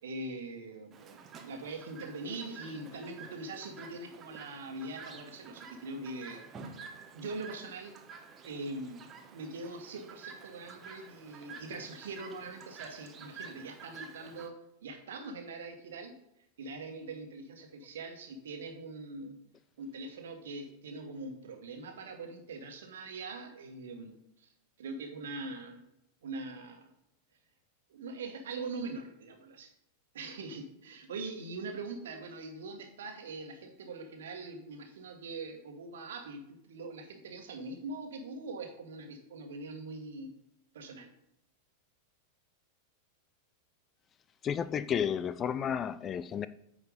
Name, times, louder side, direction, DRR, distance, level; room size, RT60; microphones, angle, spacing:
voice 1, 0.0-6.4 7.1-7.9 8.4-14.6 14.8-16.1 16.6-19.4 19.8-24.1 24.4-24.5 24.8-25.8 26.2-26.8 27.9-29.7 30.1-40.3 40.7-41.1, right 3 dB, 60° right, 1.5 m, -42 dB
Chirp tweet, 0.9-14.5, right 5 dB, 25° right, 1.1 m, -50 dB
voice 2, 44.4-46.5, left 8 dB, 25° left, 0.3 m, -32 dB
9.3 x 4.9 x 5.1 m
figure-of-eight pair, 90°, 0 cm